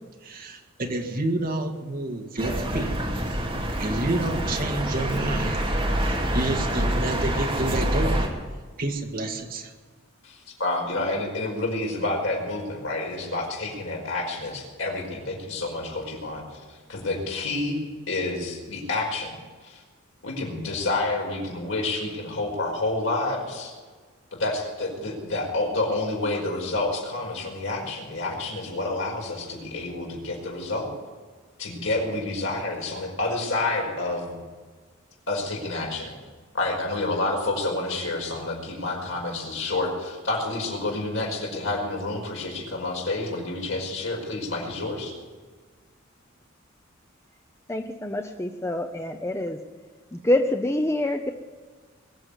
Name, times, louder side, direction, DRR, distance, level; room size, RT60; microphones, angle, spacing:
voice 1, 0.2-2.9 3.8-5.6 5.9-8.2 8.8-9.7, right 2 dB, 45° right, 3 dB, 2.0 m, -29 dB
sound 1, 2.4-8.3, equal, 25° right, 2.8 m, -26 dB
voice 2, 10.2-17.8 18.1-19.3 19.6-19.8 20.2-23.7 24.3-30.9 31.6-34.4 35.3-36.1 36.5-45.1, left 2 dB, 75° left, 0 dB, 5.2 m, -29 dB
voice 3, 47.7-49.6 50.1-51.3, left 1 dB, 15° left, 5 dB, 0.7 m, -26 dB
22.0 x 7.7 x 8.2 m, 1.4 s
head